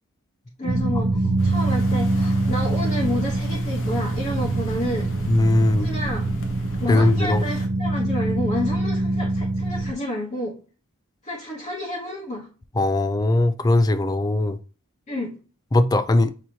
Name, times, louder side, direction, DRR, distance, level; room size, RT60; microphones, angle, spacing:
voice 1, 0.6-5.1 5.8-6.3 6.8-10.5 11.2-12.5 15.1-15.3, left 1 dB, 35° left, 1.1 m, -30 dB
sound 1, 0.7-9.9, right 2 dB, 55° right, 0.6 m, -24 dB
sound 2, 1.4-7.7, left 1 dB, 60° left, 0.8 m, -40 dB
sound 3, 3.7-9.3, equal, ahead, 0.9 m, -38 dB
voice 2, 5.3-5.9 6.9-7.4 12.8-14.6 15.7-16.3, left 2 dB, 15° left, 0.3 m, -19 dB
6.2 x 2.9 x 2.8 m
head